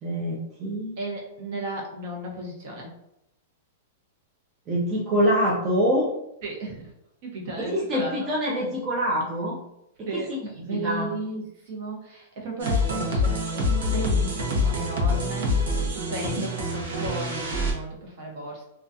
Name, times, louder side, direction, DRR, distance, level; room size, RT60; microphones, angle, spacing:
voice 1, 0.0-1.0 4.7-6.1 7.7-9.6 10.0-11.1, equal, 20° right, -5 dB, 0.4 m, -25 dB
voice 2, 1.0-2.9 6.4-6.9 7.2-8.3 10.1-13.6 13.9-18.6, right 1 dB, 50° right, -1 dB, 0.8 m, -34 dB
sound 1, 12.6-17.7, left 2 dB, 80° right, 0.7 m, -25 dB
2.3 x 2.3 x 2.6 m, 0.81 s
supercardioid pair, 160°, 0 cm